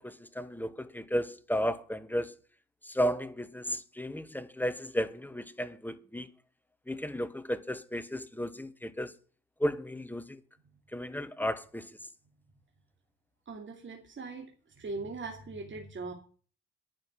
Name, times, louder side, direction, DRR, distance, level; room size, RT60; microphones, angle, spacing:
voice 1, 0.0-2.3 2.8-6.3 6.9-9.1 9.6-10.4 10.9-11.9, equal, 5° left, 1.1 m, -34 dB
voice 2, 13.5-14.5 14.8-16.1, right 3 dB, 40° right, 2.7 m, -40 dB
10.5 x 6.4 x 9.0 m
cardioid pair, 90°, 30 cm